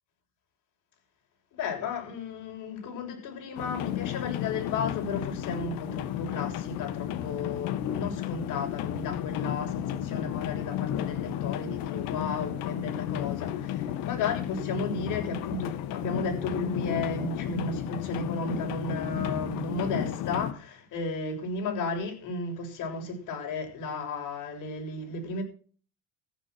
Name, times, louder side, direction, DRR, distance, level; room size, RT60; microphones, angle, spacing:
voice 1, 1.5-25.4, left 3 dB, 60° left, 7.0 m, -34 dB
sound 1, 3.6-20.5, left 11 dB, 80° left, 1.7 m, -33 dB
14.5 x 9.7 x 6.3 m
cardioid pair, 135°, 34 cm